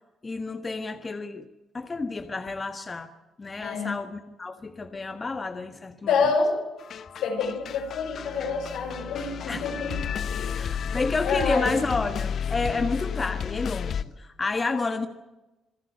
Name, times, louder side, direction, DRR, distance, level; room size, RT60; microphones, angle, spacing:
voice 1, 0.2-1.5 1.7-3.1 3.4-6.2 9.5-9.6 10.5-15.1, left 3 dB, 30° left, 8 dB, 1.5 m, -30 dB
voice 2, 3.6-4.0 6.1-6.6 7.2-10.0 10.3-10.7 11.2-11.8, left 4 dB, 85° left, 3 dB, 6.4 m, -27 dB
sound 1, 6.8-14.0, left 7 dB, 60° left, 0.9 m, -32 dB
27.0 x 11.5 x 9.3 m, 1.1 s
cardioid pair, 90°, 0 cm